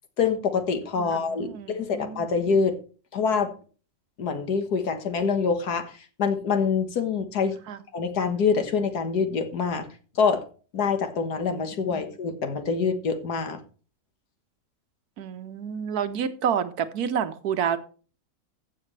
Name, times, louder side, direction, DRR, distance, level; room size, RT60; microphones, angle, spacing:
voice 1, 0.2-2.8 3.1-3.5 4.2-5.9 6.2-7.6 7.9-9.9 10.2-10.4 10.7-13.6, left 5 dB, 85° left, 8 dB, 1.9 m, -25 dB
voice 2, 1.0-2.3 7.7-7.8 11.8-12.0 15.2-17.8, right 8 dB, 75° right, 11 dB, 1.4 m, -29 dB
14.5 x 7.5 x 3.2 m, 0.38 s
omnidirectional pair, 1.6 m